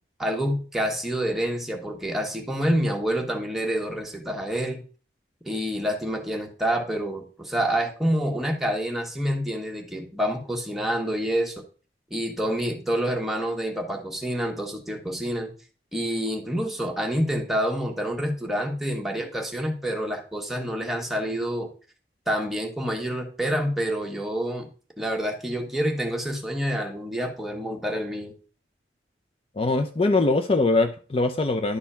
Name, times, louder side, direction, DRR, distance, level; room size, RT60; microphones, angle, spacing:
voice 1, 0.2-4.8 5.4-11.6 12.1-15.5 15.9-21.7 22.3-24.7 25.0-28.3, equal, ahead, 1 dB, 1.5 m, -27 dB
voice 2, 29.6-31.8, left 3 dB, 35° left, 6 dB, 0.5 m, -22 dB
11.5 x 4.2 x 5.6 m, 0.39 s
head